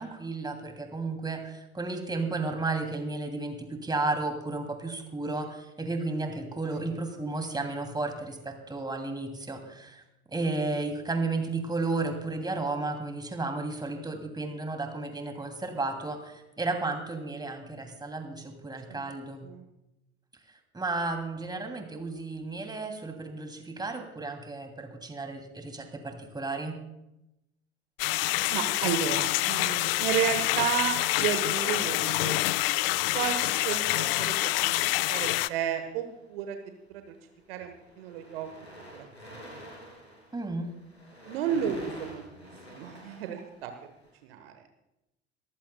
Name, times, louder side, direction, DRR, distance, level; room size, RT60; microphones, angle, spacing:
voice 1, 0.0-10.0 10.3-19.5 20.7-26.8 40.3-40.7, right 3 dB, 15° right, 5 dB, 2.8 m, -33 dB
sound 1, 28.0-35.5, left 18 dB, 60° left, 0.5 m, -27 dB
voice 2, 28.5-32.4 33.1-34.3 34.6-34.7 35.1-37.1 37.5-38.5 38.9-39.0 39.3-39.7 41.3-42.2 42.7-43.7 44.2-44.5, right 9 dB, 65° right, 7 dB, 1.2 m, -32 dB
sound 2, 35.3-36.3 37.1-37.3 37.6-44.1, equal, 90° left, 3.0 m, -48 dB
23.5 x 14.5 x 2.3 m, 0.89 s
figure-of-eight pair, 65°, 32 cm